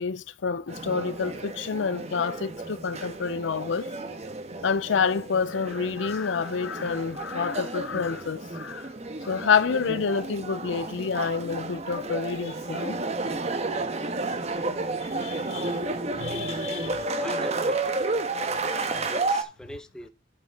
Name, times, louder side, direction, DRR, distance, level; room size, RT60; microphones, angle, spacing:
voice 1, 0.0-3.9 4.6-8.9 9.2-13.0 15.2-15.8 16.2-17.0, left 5 dB, 85° left, 0.5 m, -28 dB
sound 1, 0.7-19.4, right 2 dB, 35° right, 1.1 m, -32 dB
voice 2, 16.9-18.1 18.8-20.1, equal, 5° left, 0.9 m, -42 dB
11.5 x 5.0 x 4.7 m
head